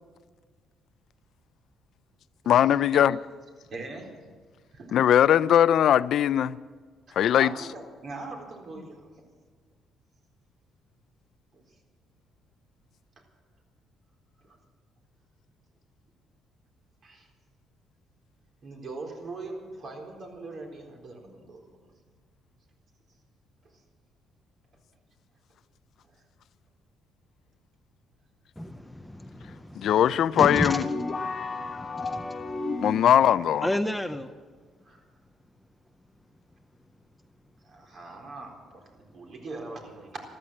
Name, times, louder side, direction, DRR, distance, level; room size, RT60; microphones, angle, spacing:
voice 1, 2.5-3.2 4.9-6.6 7.1-7.5 29.8-30.9 32.8-33.7, left 10 dB, 65° left, 0.4 m, -20 dB
voice 2, 3.7-4.1 4.7-5.0 7.1-9.0 11.5-11.6 17.0-17.2 18.6-21.6 29.4-29.5 34.9-35.0 37.7-40.2, right 3 dB, 50° right, 3.9 m, -41 dB
voice 3, 28.6-29.9 30.4-30.8 31.2-32.8 33.6-34.3, left 1 dB, 5° left, 0.6 m, -32 dB
sound 1, 30.4-33.2, left 3 dB, 25° left, 1.2 m, -33 dB
14.0 x 13.5 x 7.5 m
cardioid pair, 125°, 0 cm